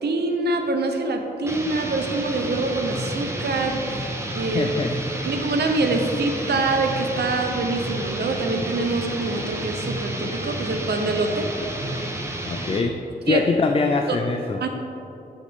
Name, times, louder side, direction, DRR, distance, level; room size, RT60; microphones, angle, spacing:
voice 1, 0.0-4.1 4.3-4.7 5.2-11.5 13.3-13.4 14.1-14.2 14.6-14.7, right 3 dB, 85° right, 4 dB, 0.8 m, -25 dB
sound 1, 1.4-12.9, right 1 dB, 15° right, 0.7 m, -31 dB
sound 2, 2.3-12.2, right 1 dB, 45° right, 1.3 m, -36 dB
voice 2, 4.5-5.0 12.5-13.0 13.3-14.7, left 4 dB, 35° left, 4 dB, 0.4 m, -23 dB
9.8 x 6.5 x 3.6 m, 3.0 s
wide cardioid pair, 180°, 17 cm